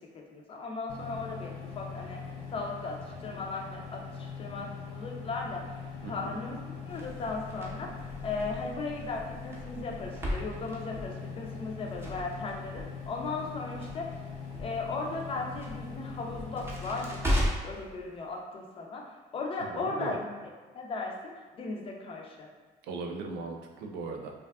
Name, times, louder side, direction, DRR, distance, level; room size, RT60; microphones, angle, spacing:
voice 1, 0.1-2.2 2.5-5.6 6.0-7.9 8.2-14.1 14.6-19.0 19.3-20.3 20.7-22.5, left 3 dB, 35° left, 0 dB, 0.4 m, -37 dB
sound 1, 0.9-17.5, left 6 dB, 90° left, 0.5 m, -42 dB
voice 2, 6.0-6.4 19.6-20.1 22.9-24.3, right 4 dB, 85° right, 2 dB, 0.4 m, -38 dB
Crackle, 6.9-17.8, equal, 15° right, 0.6 m, -37 dB
2.5 x 2.4 x 2.2 m, 1.4 s
cardioid pair, 110°, 17 cm